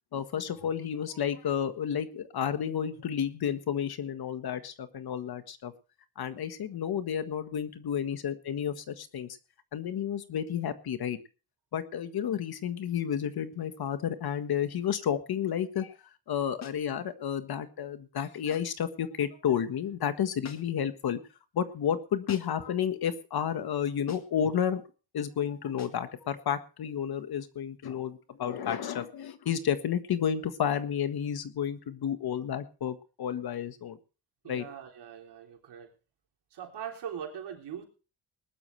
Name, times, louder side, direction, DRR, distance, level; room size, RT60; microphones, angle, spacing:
voice 1, 0.1-5.7 6.2-9.4 9.7-11.2 11.7-15.9 16.3-21.2 21.5-24.8 25.1-34.0 34.5-34.7, left 8 dB, 65° left, 10 dB, 1.6 m, -31 dB
sound 1, 16.6-16.9 18.5-18.8 20.4-20.9 22.3-22.7 24.1-24.4 25.8-26.1, left 6 dB, 40° left, 1.7 m, -46 dB
voice 2, 34.4-35.9 36.5-37.8, right 8 dB, 80° right, 2 dB, 3.7 m, -41 dB
20.0 x 12.0 x 3.3 m, 0.34 s
cardioid pair, 90°, 40 cm